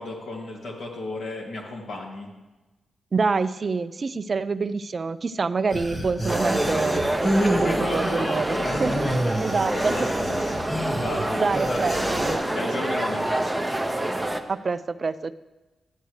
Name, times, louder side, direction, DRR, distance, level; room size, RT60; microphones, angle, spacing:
voice 1, 0.0-2.3 7.4-9.3 9.7-10.3 10.9-11.9 12.5-13.5, left 2 dB, 70° left, -1 dB, 2.0 m, -34 dB
voice 2, 3.1-7.3 7.6-9.1 9.4-10.1 11.4-12.5 14.5-15.3, right 4 dB, 50° right, 14 dB, 0.3 m, -27 dB
sound 1, 5.7-12.4, equal, 25° left, 1.7 m, -28 dB
sound 2, 6.3-14.4, right 1 dB, 10° right, 0.8 m, -27 dB
12.5 x 7.9 x 3.2 m, 1.1 s
supercardioid pair, 50°, 0 cm